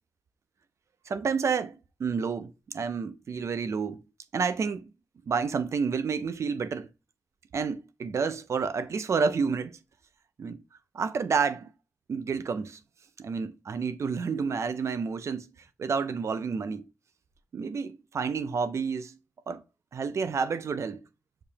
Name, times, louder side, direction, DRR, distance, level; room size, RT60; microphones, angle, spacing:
voice 1, 1.1-4.0 4.3-4.9 5.3-6.9 7.5-9.8 10.4-10.6 10.9-11.7 12.1-12.8 13.2-15.5 15.8-16.9 17.5-19.2 19.5-19.6 19.9-21.0, right 5 dB, 80° right, 0.4 m, -29 dB
6.6 x 2.8 x 2.7 m
wide cardioid pair, 130°, 5 cm